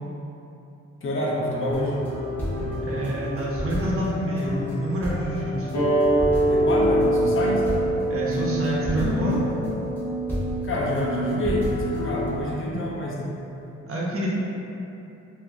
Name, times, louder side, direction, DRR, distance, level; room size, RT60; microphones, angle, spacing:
voice 1, 1.0-1.9 6.5-7.6 10.6-13.3, left 1 dB, 45° left, -4 dB, 0.5 m, -27 dB
Piano, 1.4-9.9, right 1 dB, 30° right, 0.9 m, -39 dB
sound 1, 1.7-12.3, left 1 dB, 5° left, 0.7 m, -29 dB
voice 2, 2.8-5.7 8.1-9.5 13.9-14.3, right 1 dB, 50° right, -5 dB, 0.6 m, -27 dB
sound 2, 5.7-10.9, right 1 dB, 80° left, 0.7 m, -24 dB
2.1 x 2.1 x 3.5 m, 2.8 s
cardioid pair, 100°, 29 cm